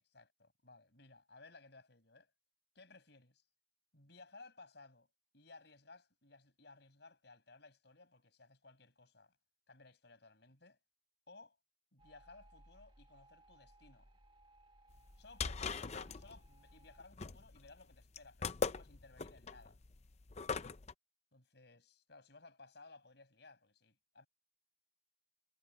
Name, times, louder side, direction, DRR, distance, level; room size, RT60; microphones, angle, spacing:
voice 1, 0.1-2.3 2.8-3.4 3.9-5.1 5.3-9.3 9.7-10.8 11.3-11.6 11.9-14.1 15.2-19.8 21.3-24.3, left 3 dB, 60° left, 7.2 m, -59 dB
sound 1, 12.0-17.0, right 1 dB, 25° right, 2.2 m, -64 dB
sound 2, 15.0-20.9, left 5 dB, 35° left, 0.6 m, -41 dB
head